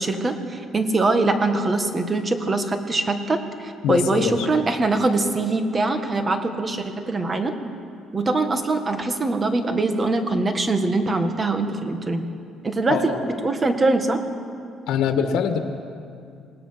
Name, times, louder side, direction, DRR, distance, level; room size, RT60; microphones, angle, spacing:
voice 1, 0.0-7.5 8.1-12.3 12.6-14.2, right 2 dB, 25° right, 6 dB, 1.8 m, -23 dB
voice 2, 3.8-4.5 12.9-13.2 14.9-15.6, left 7 dB, 85° left, 6 dB, 1.6 m, -23 dB
27.0 x 19.0 x 6.0 m, 2.4 s
cardioid pair, 125°, 0 cm